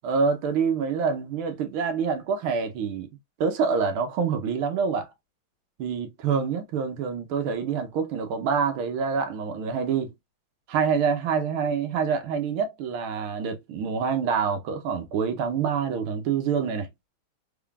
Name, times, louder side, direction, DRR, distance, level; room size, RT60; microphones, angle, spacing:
voice 1, 0.0-3.1 3.4-5.1 5.8-10.1 10.7-16.9, right 6 dB, 75° right, 1.7 m, -26 dB
3.9 x 3.6 x 2.3 m
omnidirectional pair, 2.4 m